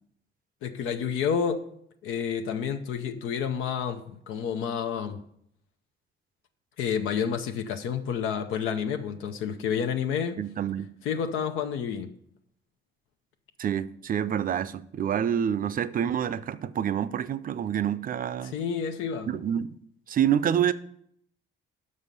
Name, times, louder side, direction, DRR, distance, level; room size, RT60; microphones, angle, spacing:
voice 1, 0.6-1.6 2.0-5.2 6.8-10.4 11.0-12.1 18.4-19.4, left 7 dB, 90° left, 0.7 m, -29 dB
voice 2, 10.4-10.9 13.6-18.5 19.3-19.8 20.1-20.7, right 9 dB, 45° right, 0.5 m, -27 dB
6.3 x 5.4 x 6.7 m
cardioid pair, 90°, 20 cm